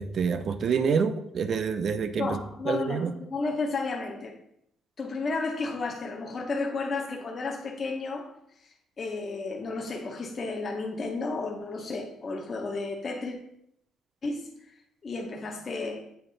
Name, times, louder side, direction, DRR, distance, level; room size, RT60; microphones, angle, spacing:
voice 1, 0.0-2.4 2.7-3.1, right 6 dB, 40° right, 10 dB, 0.4 m, -27 dB
voice 2, 2.1-4.4 5.0-13.4 14.2-14.7 15.0-16.1, left 3 dB, 30° left, 1 dB, 0.7 m, -33 dB
7.8 x 4.6 x 3.9 m, 0.73 s
cardioid pair, 175°, 0 cm